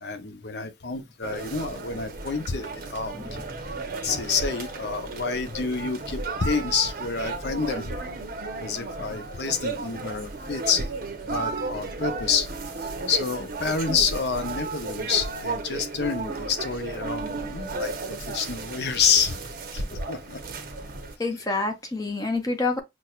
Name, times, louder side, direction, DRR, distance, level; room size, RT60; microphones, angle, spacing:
voice 1, 0.0-3.4 4.0-7.8 8.6-10.9 11.3-12.5 12.8-19.4 19.7-20.4, left 5 dB, 65° left, 0.7 m, -28 dB
sound 1, 1.2-21.2, right 3 dB, 55° right, 0.7 m, -34 dB
voice 2, 21.2-22.8, left 3 dB, 20° left, 0.6 m, -27 dB
6.0 x 2.2 x 2.3 m
head